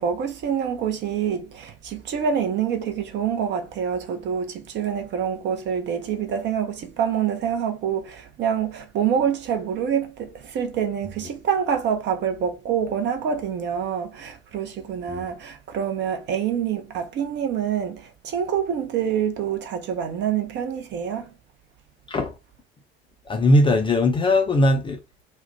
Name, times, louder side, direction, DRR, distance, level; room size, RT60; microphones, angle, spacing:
voice 1, 0.0-21.3, right 8 dB, 35° right, 0.6 m, -26 dB
voice 2, 23.3-25.2, left 1 dB, 15° left, 0.4 m, -20 dB
2.3 x 2.1 x 3.3 m
figure-of-eight pair, 70°, 30 cm